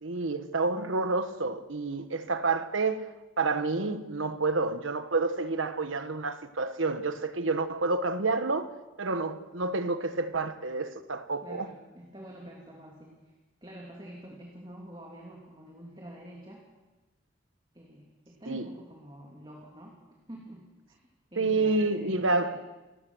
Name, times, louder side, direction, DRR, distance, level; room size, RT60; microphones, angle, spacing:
voice 1, 0.0-3.1 3.4-8.7 9.0-11.7 18.5-18.7 21.4-22.6, right 3 dB, 90° right, 1.3 m, -29 dB
voice 2, 11.4-13.3 13.6-16.6 17.7-21.0 21.3-22.6, equal, 25° right, 2.9 m, -46 dB
28.5 x 16.5 x 6.4 m
head